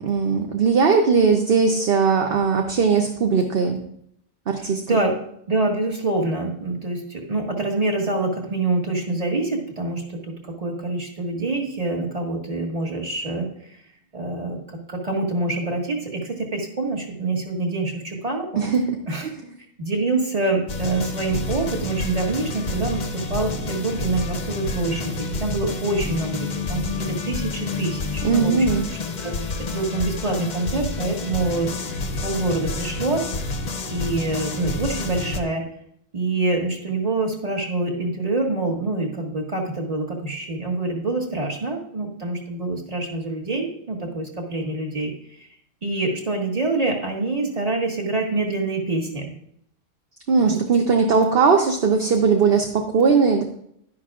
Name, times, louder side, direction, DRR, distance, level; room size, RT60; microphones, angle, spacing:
voice 1, 0.0-3.8 4.5-5.0 18.6-18.8 28.2-28.9 50.3-53.4, right 5 dB, 55° right, 3 dB, 1.0 m, -19 dB
voice 2, 4.6-5.2 5.5-13.8 14.1-18.7 19.1-19.3 19.8-29.3 29.7-31.7 32.2-33.2 33.9-35.6 36.1-45.1 45.4-45.5 45.8-49.2 50.4-50.6, right 2 dB, 30° right, 0 dB, 1.7 m, -26 dB
sound 1, 20.7-35.4, left 3 dB, 45° left, 0.7 m, -29 dB
11.0 x 10.5 x 2.4 m, 0.69 s
omnidirectional pair, 1.3 m